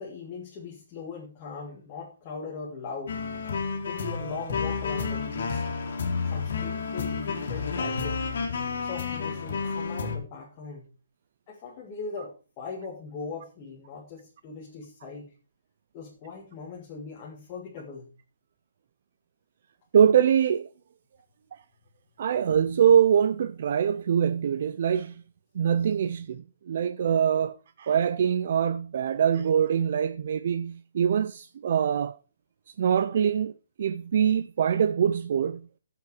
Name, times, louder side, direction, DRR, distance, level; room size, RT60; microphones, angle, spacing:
voice 1, 0.0-3.2 3.8-5.6 6.3-8.2 8.8-10.9 11.5-15.3 15.9-18.1, left 4 dB, 20° left, 2.0 m, -40 dB
sound 1, 3.1-10.2, left 5 dB, 50° left, 2.5 m, -30 dB
voice 2, 19.9-20.7 21.5-21.6 22.2-25.2 25.5-32.2 32.8-33.5 33.8-35.7, right 8 dB, 40° right, 0.4 m, -24 dB
12.0 x 7.7 x 4.8 m
hypercardioid pair, 175°, 0 cm